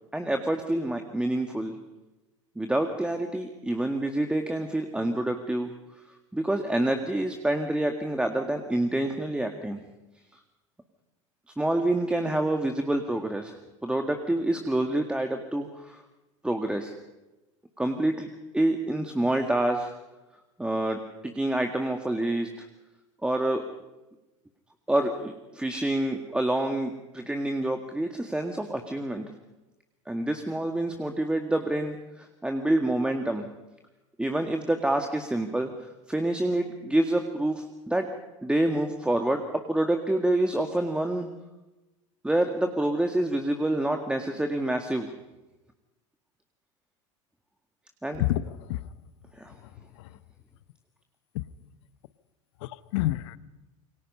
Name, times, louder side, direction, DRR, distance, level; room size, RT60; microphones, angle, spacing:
voice 1, 0.1-1.7 2.6-5.7 6.3-9.8 11.5-13.5 13.8-16.0 16.4-16.9 17.8-18.3 18.5-19.9 20.6-22.7 23.2-23.6 24.9-29.3 30.1-33.5 34.2-38.1 38.4-41.3 42.2-45.1 48.0-48.2 49.4-49.5, right 1 dB, 5° right, 2.0 m, -27 dB
voice 2, 48.2-48.8 50.0-50.1 51.3-51.4 52.6-53.4, left 15 dB, 65° left, 1.1 m, -28 dB
27.5 x 24.0 x 5.6 m
figure-of-eight pair, 75°, 16 cm